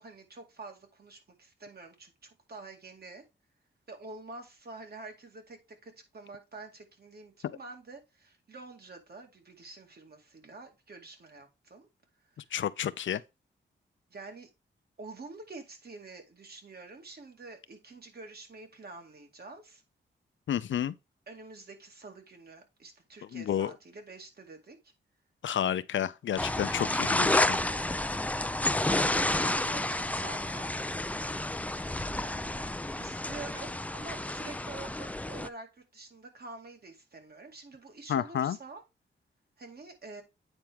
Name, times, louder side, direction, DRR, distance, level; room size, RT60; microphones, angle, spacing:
voice 1, 0.0-3.2 3.9-11.9 14.1-14.5 15.0-19.8 21.3-24.8 28.9-31.0 32.1-32.6 33.0-38.8 39.6-40.2, right 3 dB, 50° right, 2.3 m, -47 dB
voice 2, 12.5-13.2 20.5-20.9 23.3-23.7 25.4-27.6 38.1-38.6, left 10 dB, 75° left, 0.6 m, -30 dB
sound 1, 26.4-35.5, left 1 dB, 5° left, 0.5 m, -30 dB
8.9 x 4.4 x 3.5 m
cardioid pair, 80°, 20 cm